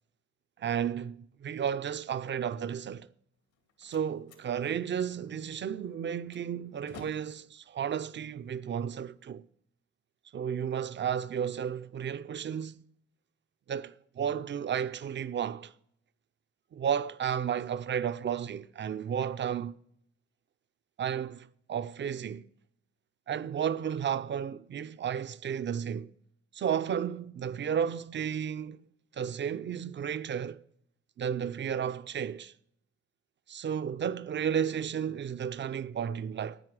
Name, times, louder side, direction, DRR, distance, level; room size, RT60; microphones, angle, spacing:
voice 1, 0.6-3.1 3.8-9.4 10.3-12.8 13.7-15.7 16.7-19.7 21.0-22.5 23.3-26.1 26.5-28.9 29.1-30.6 31.2-32.5 33.5-36.6, right 8 dB, 40° right, 0.5 m, -33 dB
Slam, 3.3-9.3, left 4 dB, 85° left, 2.6 m, -56 dB
9.8 x 9.6 x 6.1 m
cardioid pair, 90°, 30 cm